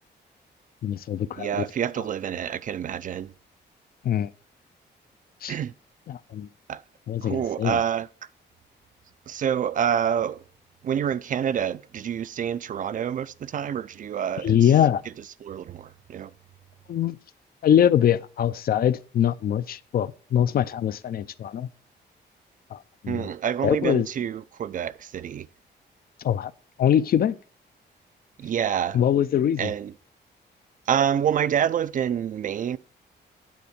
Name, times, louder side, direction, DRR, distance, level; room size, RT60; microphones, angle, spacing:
voice 1, 0.8-1.6 4.0-4.3 5.4-5.5 6.1-6.5 7.1-7.8 14.4-15.0 16.9-17.2 17.6-21.7 22.7-23.3 23.6-24.1 26.2-26.5 26.8-27.3 28.9-29.7, left 10 dB, 55° left, 0.4 m, -23 dB
voice 2, 1.3-3.3 5.5-5.7 6.7-6.8 7.2-8.1 9.3-10.4 10.8-14.7 15.4-16.3 23.1-25.5 28.4-29.0 29.6-29.9 30.9-32.8, right 9 dB, 45° right, 0.4 m, -27 dB
9.4 x 4.2 x 7.1 m
wide cardioid pair, 150°, 19 cm